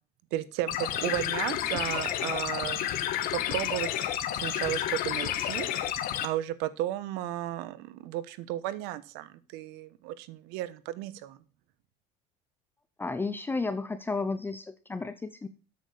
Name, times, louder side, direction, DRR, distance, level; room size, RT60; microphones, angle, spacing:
voice 1, 0.3-2.9 3.3-5.7 6.2-11.4, right 14 dB, 80° right, 15 dB, 1.1 m, -34 dB
sound 1, 0.7-6.3, left 11 dB, 60° left, 1.3 m, -30 dB
voice 2, 13.0-15.5, left 3 dB, 10° left, 12 dB, 0.6 m, -32 dB
8.5 x 7.5 x 6.5 m, 0.36 s
cardioid pair, 140°, 17 cm